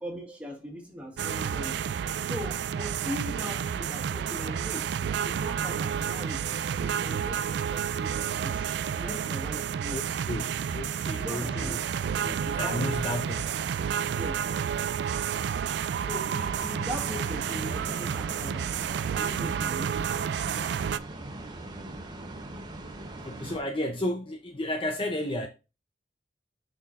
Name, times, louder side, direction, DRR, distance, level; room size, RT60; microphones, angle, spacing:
voice 1, 0.0-1.8 2.2-4.9 5.2-6.5 6.8-8.7 9.0-10.0 11.1-11.9 12.6-13.0 14.0-14.6 16.0-18.8 19.1-20.5, equal, 10° right, 1.7 m, -40 dB
sound 1, 1.2-21.0, right 8 dB, 70° right, 0.3 m, -30 dB
voice 2, 9.9-11.8 12.2-13.4 13.7-13.8 23.2-25.5, left 1 dB, 30° left, 0.6 m, -32 dB
sound 2, 16.4-23.6, right 1 dB, 25° right, 0.8 m, -40 dB
6.7 x 5.8 x 2.5 m
head